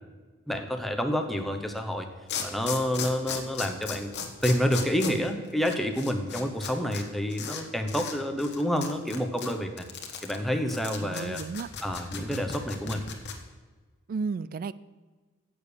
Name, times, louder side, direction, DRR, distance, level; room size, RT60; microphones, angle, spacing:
voice 1, 0.5-2.1 2.4-4.1 4.4-9.9 10.2-11.4 11.8-13.0, equal, ahead, 4 dB, 0.9 m, -28 dB
sound 1, 1.7-1.8 2.3-7.0 7.3-7.6 7.9-8.1 8.4-13.3, left 7 dB, 55° left, 1.2 m, -36 dB
voice 2, 11.0-11.7 14.1-14.7, right 4 dB, 45° right, 18 dB, 0.3 m, -33 dB
8.5 x 7.0 x 6.9 m, 1.3 s
head